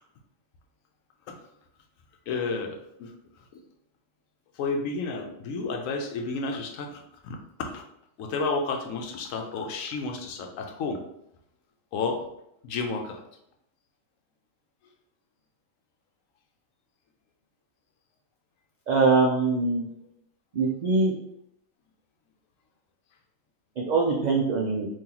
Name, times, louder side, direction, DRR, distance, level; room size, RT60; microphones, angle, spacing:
voice 1, 2.3-3.1 4.6-7.8 8.2-11.0 11.9-12.2 12.6-13.2, left 4 dB, 90° left, 4 dB, 1.0 m, -31 dB
voice 2, 18.9-19.9 20.5-21.1 23.8-24.9, right 3 dB, 80° right, -1 dB, 0.4 m, -23 dB
2.9 x 2.7 x 3.7 m, 0.78 s
omnidirectional pair, 1.3 m